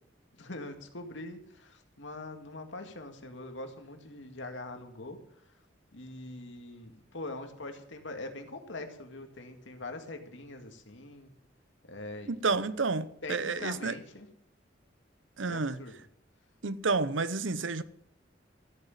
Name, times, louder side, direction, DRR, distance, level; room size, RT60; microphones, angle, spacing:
voice 1, 0.3-5.2 5.9-11.3 11.9-12.6 13.2-14.3 15.5-15.9, left 2 dB, 80° left, 2.1 m, -43 dB
voice 2, 12.3-13.9 15.4-15.8 16.6-17.8, right 4 dB, 90° right, 0.8 m, -30 dB
14.0 x 9.1 x 7.3 m
head